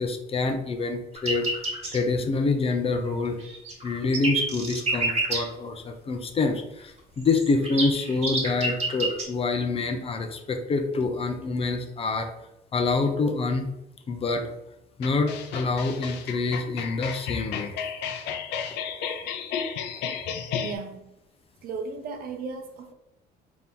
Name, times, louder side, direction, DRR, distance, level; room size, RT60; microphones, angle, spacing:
voice 1, 0.0-1.5 1.9-3.4 3.8-12.3 12.7-13.7 14.1-14.5 15.0-17.8, left 3 dB, 35° left, 6 dB, 0.6 m, -26 dB
sound 1, 1.1-2.0 3.2-5.4 7.2-9.2, right 2 dB, 40° right, 1.4 m, -28 dB
sound 2, 15.0-20.7, left 7 dB, 80° left, 0.5 m, -33 dB
voice 2, 20.6-21.1 21.6-22.9, right 4 dB, 60° right, 5 dB, 0.7 m, -35 dB
3.8 x 2.9 x 3.6 m, 0.86 s
cardioid pair, 110°, 17 cm